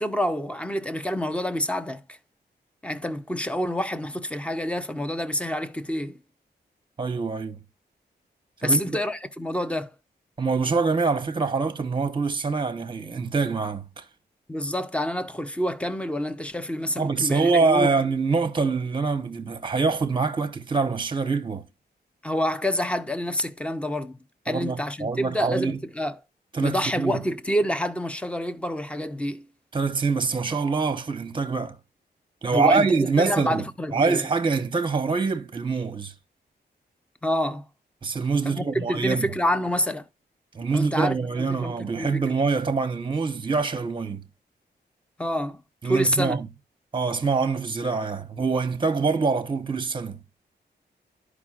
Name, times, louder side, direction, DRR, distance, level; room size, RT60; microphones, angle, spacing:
voice 1, 0.0-2.2 2.8-6.2 8.6-9.9 14.5-17.9 22.2-24.2 24.4-26.2 26.6-29.5 32.5-34.2 37.2-37.7 38.4-40.1 40.7-42.2 45.2-46.4, equal, 5° left, 0.6 m, -27 dB
voice 2, 7.0-7.6 8.6-9.0 10.4-14.0 17.0-21.7 24.5-25.8 26.5-27.2 29.7-31.8 32.4-33.6 33.9-36.1 38.0-39.3 40.5-44.2 45.8-46.5 46.9-50.2, right 4 dB, 30° right, 0.8 m, -25 dB
12.5 x 4.9 x 2.4 m
wide cardioid pair, 145°, 17 cm